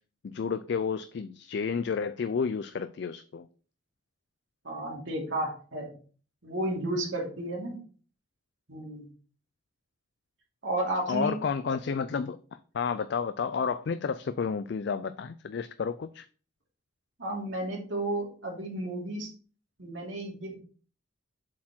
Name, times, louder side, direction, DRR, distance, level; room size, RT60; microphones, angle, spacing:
voice 1, 0.2-3.5 11.1-12.4 12.7-16.3, left 6 dB, 55° left, 0.4 m, -31 dB
voice 2, 4.6-5.9 6.4-7.8 8.7-9.1 10.6-11.3 17.2-19.3 19.8-20.6, right 1 dB, 70° right, 2.7 m, -32 dB
7.4 x 4.4 x 4.4 m
head